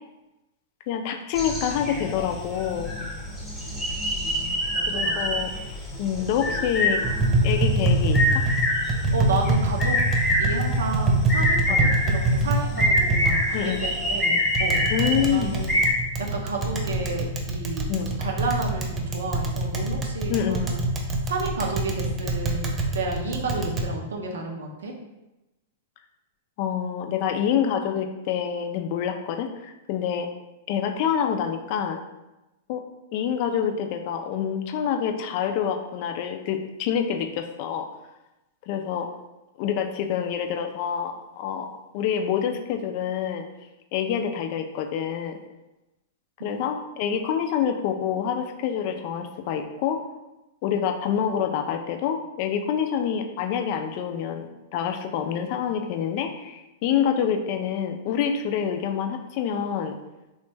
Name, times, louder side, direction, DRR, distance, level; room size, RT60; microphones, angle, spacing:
voice 1, 0.9-2.9 4.9-5.5 6.0-7.0 7.4-8.2 11.7-11.9 13.5-13.8 14.9-15.5 17.9-18.1 20.3-20.6 26.6-30.3 30.7-32.0 32.7-32.8 33.1-37.9 38.7-39.1 39.6-43.4 43.9-45.4 46.4-50.0 50.6-54.5 54.7-59.9, left 8 dB, 50° left, 5 dB, 0.3 m, -27 dB
sound 1, 1.3-15.9, left 1 dB, 5° left, 0.8 m, -26 dB
voice 2, 4.7-5.1 9.1-10.0 10.4-13.4 13.8-14.8 15.3-15.8 16.2-20.8 21.3-22.7 22.9-24.9 46.4-46.5, right 3 dB, 85° right, 1 dB, 0.6 m, -31 dB
Tap, 7.0-23.9, right 2 dB, 20° right, 0.5 m, -25 dB
3.0 x 2.1 x 3.2 m, 0.98 s
hypercardioid pair, 115°, 0 cm